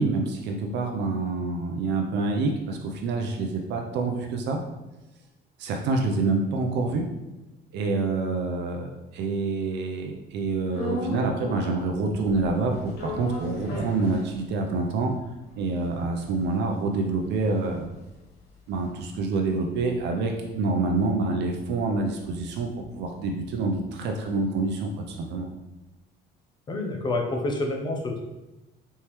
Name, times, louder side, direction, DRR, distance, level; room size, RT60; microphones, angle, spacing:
voice 1, 0.0-4.6 5.6-7.0 7.7-15.1 15.6-17.9 18.7-22.7 22.9-25.5, right 3 dB, 65° right, 2 dB, 0.6 m, -27 dB
sound 1, 10.7-11.9 12.2-14.8 15.2-15.3 15.5-20.0 20.3-24.4, left 1 dB, 60° left, 1.1 m, -39 dB
voice 2, 26.7-28.2, left 2 dB, 25° left, 1 dB, 0.6 m, -28 dB
4.3 x 3.5 x 3.1 m, 1.0 s
cardioid pair, 165°, 19 cm